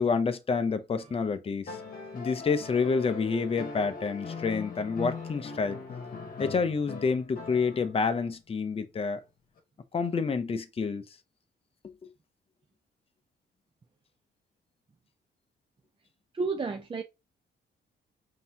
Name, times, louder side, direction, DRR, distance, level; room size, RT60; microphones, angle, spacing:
voice 1, 0.0-1.8 2.1-5.8 6.4-9.2 9.9-11.0, left 5 dB, 30° left, 0.6 m, -28 dB
sound 1, 1.6-8.1 9.6-9.7, left 4 dB, 50° left, 1.3 m, -40 dB
voice 2, 16.3-17.0, right 4 dB, 25° right, 0.5 m, -31 dB
5.3 x 2.8 x 2.8 m
cardioid pair, 115°, 19 cm